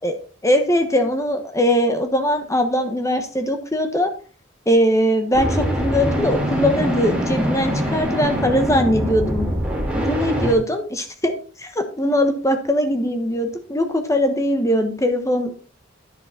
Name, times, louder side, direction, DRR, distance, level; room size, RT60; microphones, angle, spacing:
voice 1, 0.4-4.1 4.7-9.5 9.9-15.5, equal, 15° left, 6 dB, 1.2 m, -21 dB
sound 1, 5.3-10.5, equal, 5° right, 3.7 m, -23 dB
10.5 x 7.0 x 4.1 m, 0.40 s
head